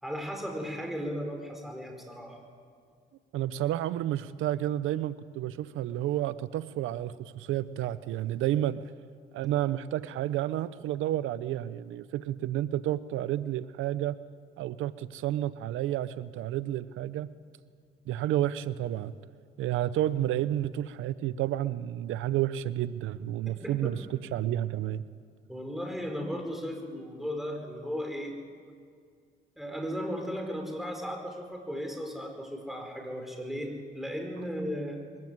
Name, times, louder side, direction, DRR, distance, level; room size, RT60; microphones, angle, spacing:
voice 1, 0.0-2.4 23.6-23.9 25.5-28.3 29.6-35.0, equal, ahead, 2 dB, 5.2 m, -36 dB
voice 2, 3.3-8.9 9.3-14.2 14.6-17.3 18.1-19.1 19.6-25.0, right 12 dB, 85° right, 15 dB, 0.6 m, -30 dB
22.5 x 15.0 x 9.4 m, 2.1 s
cardioid pair, 90°, 20 cm